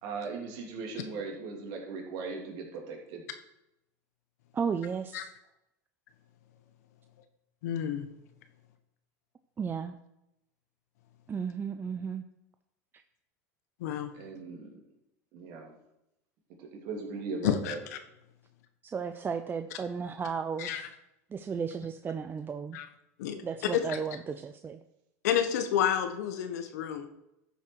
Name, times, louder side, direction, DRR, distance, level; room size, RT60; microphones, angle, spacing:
voice 1, 0.0-3.2 14.1-14.7 15.3-15.7 16.6-17.8, right 4 dB, 60° right, 0 dB, 3.2 m, -38 dB
voice 2, 4.5-5.3 9.6-10.0 11.3-12.2 18.8-20.8 21.3-22.8 23.4-24.8, right 6 dB, 25° right, 8 dB, 0.6 m, -34 dB
voice 3, 7.6-8.1 13.8-14.1 17.4-18.0 20.6-20.9 22.7-22.9 23.2-23.4 23.7-24.0 25.2-27.1, left 9 dB, 80° left, 8 dB, 1.3 m, -30 dB
13.0 x 7.2 x 4.7 m, 0.87 s
supercardioid pair, 110°, 9 cm